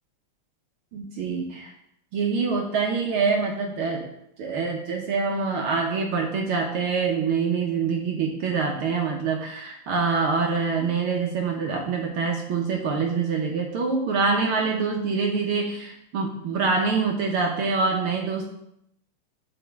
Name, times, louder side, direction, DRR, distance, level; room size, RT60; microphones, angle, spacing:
voice 1, 0.9-1.7 2.1-4.0 4.4-18.5, right 4 dB, 65° right, 1 dB, 1.4 m, -25 dB
13.0 x 4.8 x 3.5 m, 0.77 s
omnidirectional pair, 3.4 m